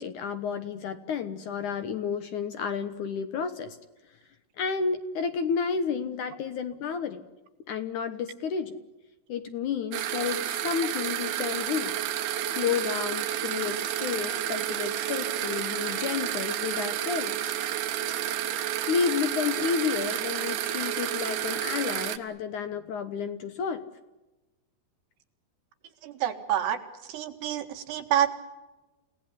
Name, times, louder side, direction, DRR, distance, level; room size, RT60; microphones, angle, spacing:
voice 1, 0.0-3.8 4.6-7.2 7.7-8.8 9.3-12.0 12.5-17.5 18.9-23.8, left 6 dB, 65° left, 10 dB, 2.1 m, -31 dB
sound 1, 9.9-22.2, right 11 dB, 70° right, 2.9 m, -30 dB
voice 2, 26.0-26.8 27.1-28.3, right 10 dB, 85° right, 7 dB, 4.0 m, -28 dB
29.5 x 18.0 x 9.8 m, 1.1 s
omnidirectional pair, 4.7 m